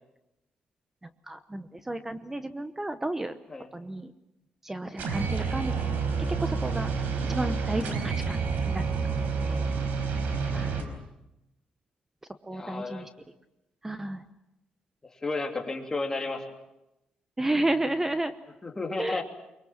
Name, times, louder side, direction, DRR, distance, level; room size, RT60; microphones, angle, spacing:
voice 1, 1.3-3.3 3.7-4.1 4.6-6.0 6.4-6.9 7.3-8.4 8.7-8.8 9.4-9.7 10.5-10.8 12.4-13.1 13.8-14.2 17.4-18.3 19.0-19.2, right 1 dB, 15° right, 11 dB, 0.9 m, -32 dB
sound 1, 5.0-10.8, right 5 dB, 80° right, 4.4 m, -29 dB
voice 2, 12.5-13.1 15.0-16.4 18.6-19.2, left 3 dB, 20° left, 2 dB, 3.1 m, -33 dB
23.5 x 23.5 x 7.4 m, 0.92 s
cardioid pair, 120°, 3 cm